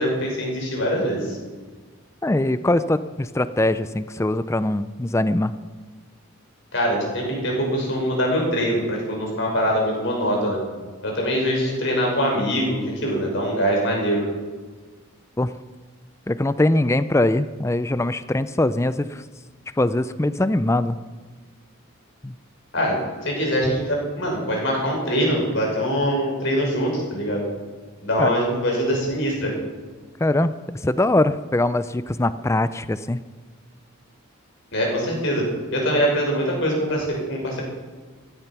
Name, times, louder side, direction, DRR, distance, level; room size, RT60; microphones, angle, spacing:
voice 1, 0.0-1.4 6.7-10.6 11.0-14.2 22.7-27.4 28.0-29.5 34.7-37.6, equal, 55° left, -1 dB, 5.9 m, -23 dB
voice 2, 2.2-5.5 15.4-15.6 16.3-19.2 19.8-21.0 22.2-22.3 28.2-28.3 30.2-33.2, left 1 dB, 15° left, 14 dB, 0.4 m, -22 dB
15.5 x 14.0 x 6.0 m, 1.4 s
head